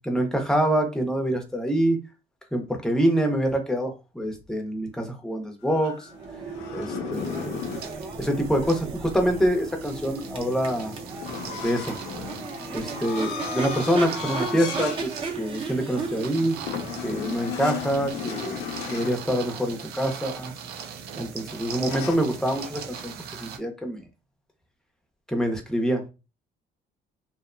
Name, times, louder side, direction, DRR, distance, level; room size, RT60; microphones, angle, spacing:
voice 1, 0.0-2.0 2.5-6.1 6.7-7.6 8.2-11.0 11.6-11.9 12.7-16.5 17.0-18.6 18.9-20.5 21.2-23.1 23.4-24.0 25.3-26.0, equal, 5° left, 3 dB, 0.7 m, -26 dB
sound 1, 5.6-7.9 11.2-15.0 15.5-15.7 16.7-19.2 21.8-22.2, left 7 dB, 90° left, 0.5 m, -35 dB
Crowd / Race car auto racing / Accelerating revving vroom, 6.0-19.9, right 4 dB, 30° right, 0.7 m, -36 dB
sound 2, 7.1-23.6, right 7 dB, 70° right, 0.5 m, -40 dB
2.7 x 2.1 x 2.4 m, 0.28 s
cardioid pair, 110°, 17 cm